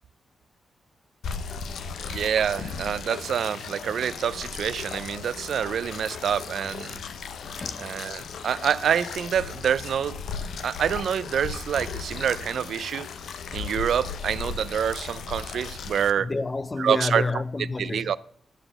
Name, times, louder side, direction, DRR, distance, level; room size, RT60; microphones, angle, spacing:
sound 1, 1.2-16.1, left 5 dB, 85° left, 0.6 m, -36 dB
voice 1, 2.1-7.0 7.8-13.1 13.5-16.3 16.8-17.2 17.8-18.2, right 8 dB, 70° right, 0.3 m, -27 dB
voice 2, 7.1-8.0 16.2-18.2, left 3 dB, 20° left, 0.4 m, -30 dB
11.5 x 4.0 x 7.7 m
wide cardioid pair, 155°, 0 cm